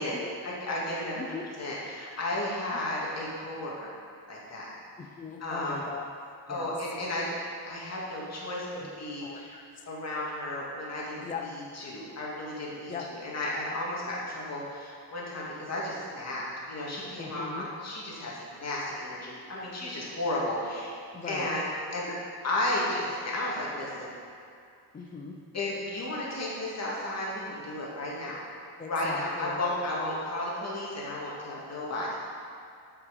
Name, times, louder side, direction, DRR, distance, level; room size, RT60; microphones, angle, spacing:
voice 1, 0.4-1.3 1.6-4.0 4.3-4.7 5.4-5.9 6.5-7.4 7.6-8.7 9.0-9.5 9.9-11.2 11.7-12.9 13.2-20.9 21.2-22.1 22.4-24.1 25.5-28.4 28.9-32.2, left 1 dB, 40° left, -5 dB, 2.1 m, -33 dB
voice 2, 5.0-6.0 6.5-6.7 8.8-8.9 9.2-9.8 11.2-11.5 12.9-13.1 17.2-17.7 21.1-21.5 24.9-25.4 28.8-29.6, left 5 dB, 20° left, 2 dB, 0.5 m, -39 dB
7.7 x 5.8 x 5.3 m, 2.4 s
cardioid pair, 125°, 41 cm